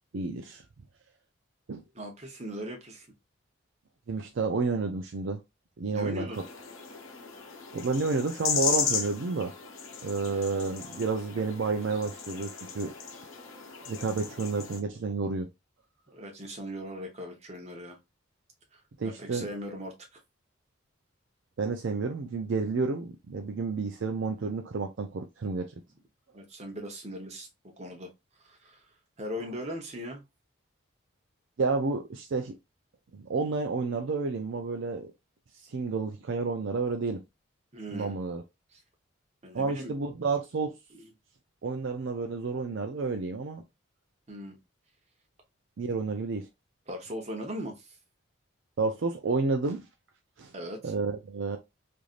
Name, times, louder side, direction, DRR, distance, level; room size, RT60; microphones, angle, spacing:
voice 1, 0.1-0.6 1.7-1.8 4.1-5.4 5.8-6.4 7.7-9.5 10.0-12.9 13.8-15.5 19.0-19.5 21.6-25.7 29.4-29.5 31.6-32.5 33.1-35.1 35.7-37.2 37.9-38.4 39.5-40.8 41.6-43.6 45.8-46.5 48.8-49.8 50.4-50.5 50.8-51.6, right 4 dB, 65° right, 0.4 m, -30 dB
voice 2, 1.9-3.1 5.9-6.4 16.1-18.0 18.7-20.2 26.3-27.5 27.8-28.1 28.4-28.8 29.2-30.2 37.7-38.1 38.7-38.8 39.4-39.9 40.9-41.1 44.3-44.6 46.9-47.9 50.5-50.9, equal, 30° right, 0.9 m, -39 dB
sound 1, 6.3-14.8, left 6 dB, 80° left, 0.7 m, -35 dB
3.2 x 2.6 x 2.4 m
head